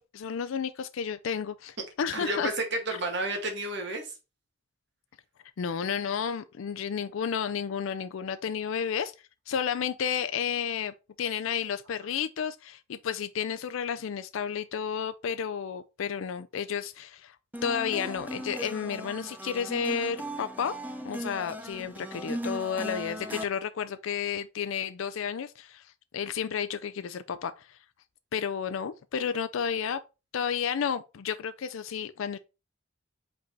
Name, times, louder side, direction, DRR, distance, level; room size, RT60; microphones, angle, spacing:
voice 1, 0.0-2.5 5.6-9.1 9.5-17.4 17.6-20.8 21.0-27.8 28.3-30.0 30.3-32.4, left 7 dB, 70° left, 0.4 m, -32 dB
voice 2, 2.1-4.2, right 2 dB, 55° right, 1.8 m, -31 dB
sound 1, 17.5-23.4, equal, 10° right, 0.6 m, -38 dB
5.4 x 4.0 x 4.5 m
head